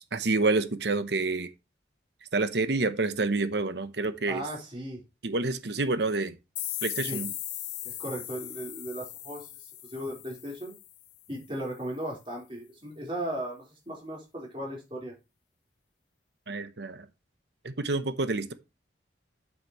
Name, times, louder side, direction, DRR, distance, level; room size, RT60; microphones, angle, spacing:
voice 1, 0.1-1.5 2.3-4.4 5.2-6.4 6.8-7.3 16.5-17.1 17.6-18.5, right 3 dB, 70° right, 0.9 m, -28 dB
voice 2, 4.3-5.0 7.0-7.2 7.8-10.8 11.3-15.1, right 1 dB, 30° right, 4.2 m, -37 dB
sound 1, 6.6-11.2, left 14 dB, 85° left, 1.3 m, -38 dB
8.3 x 8.1 x 3.1 m
head